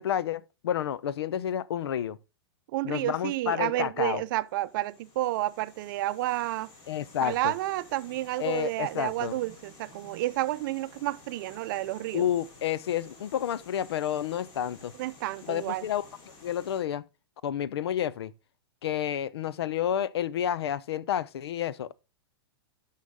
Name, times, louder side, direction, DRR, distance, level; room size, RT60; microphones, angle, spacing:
voice 1, 0.0-2.2 2.8-4.2 6.9-7.5 8.4-9.4 12.1-14.9 15.4-16.0 16.4-17.0 17.4-18.3 18.8-21.9, left 10 dB, 80° left, 0.5 m, -30 dB
voice 2, 2.7-6.7 7.2-12.3 15.0-15.8, right 16 dB, 55° right, 0.5 m, -30 dB
sound 1, 4.4-16.8, left 3 dB, 35° left, 3.0 m, -53 dB
12.5 x 5.6 x 3.6 m
hypercardioid pair, 130°, 13 cm